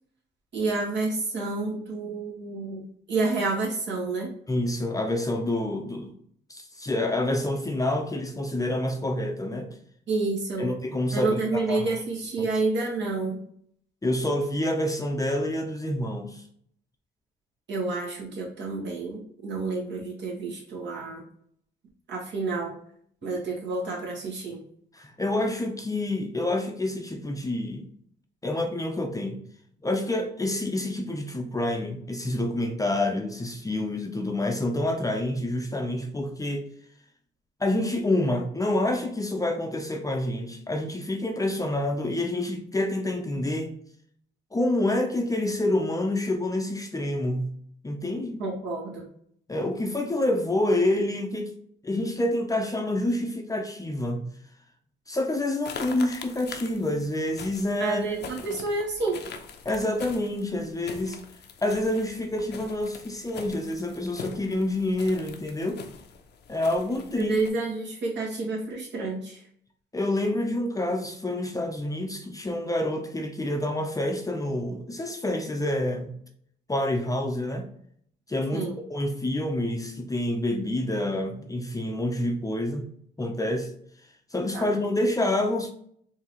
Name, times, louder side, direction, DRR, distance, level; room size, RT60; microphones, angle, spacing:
voice 1, 0.5-4.3 10.1-10.7 11.1-13.4 17.7-21.2 22.1-22.8 23.2-24.6 48.4-49.1 57.8-59.2 67.2-69.4 78.5-78.8 84.5-84.7, right 3 dB, 65° right, -3 dB, 1.7 m, -29 dB
voice 2, 4.5-6.1 6.5-9.7 10.6-12.0 12.4-12.5 14.0-16.4 24.9-27.9 28.4-29.4 29.8-36.7 37.6-43.7 44.5-47.5 47.8-48.4 49.5-51.5 51.8-54.3 55.1-58.0 59.6-61.2 61.6-65.8 66.5-67.4 69.9-76.1 76.7-77.7 78.3-82.9 83.2-83.7 84.3-85.7, left 1 dB, 15° left, 3 dB, 0.6 m, -27 dB
sound 1, 55.6-67.5, left 6 dB, 60° left, 0.6 m, -43 dB
4.6 x 2.8 x 3.0 m, 0.65 s
cardioid pair, 90°, 20 cm